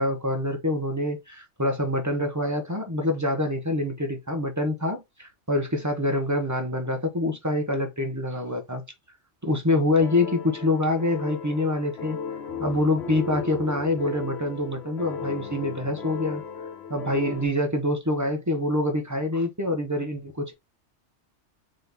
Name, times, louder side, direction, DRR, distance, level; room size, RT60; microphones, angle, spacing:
voice 1, 0.0-8.8 9.4-12.2 12.6-16.4 16.9-20.5, left 1 dB, 20° right, 0.5 m, -26 dB
sound 1, 10.0-17.5, left 6 dB, 65° left, 1.2 m, -35 dB
3.8 x 2.8 x 3.3 m
omnidirectional pair, 1.2 m